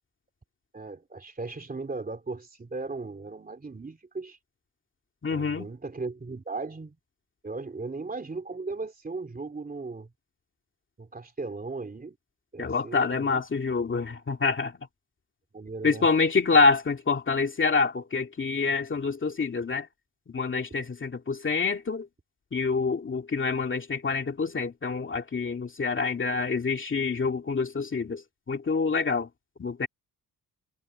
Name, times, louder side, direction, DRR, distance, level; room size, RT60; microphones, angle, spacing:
voice 1, 0.7-4.4 5.3-7.0 7.4-10.1 11.0-12.2 12.5-13.4 15.5-16.1, right 3 dB, 25° right, 3.1 m, -37 dB
voice 2, 5.2-5.7 12.6-14.8 15.8-19.9 20.3-22.1 22.5-28.2 28.5-29.3 29.6-29.9, left 4 dB, 30° left, 2.3 m, -26 dB
wide cardioid pair, 170°, 37 cm